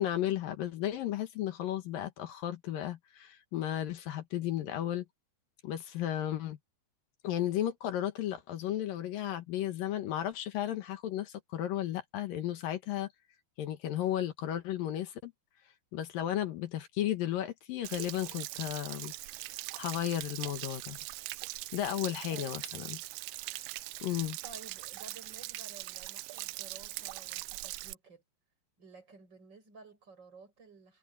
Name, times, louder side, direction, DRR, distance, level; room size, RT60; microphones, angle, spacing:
voice 1, 0.0-5.0 5.6-6.6 7.2-13.1 13.6-15.3 15.9-19.1 19.8-21.0 21.7-23.0 24.0-24.4, left 12 dB, 65° left, 2.6 m, -34 dB
Stream / Splash splatter / Trickle dribble, 17.8-27.9, right 20 dB, 85° right, 2.3 m, -41 dB
voice 2, 24.4-28.2 28.8-31.0, right 4 dB, 25° right, 7.7 m, -53 dB
omnidirectional pair, 5.0 m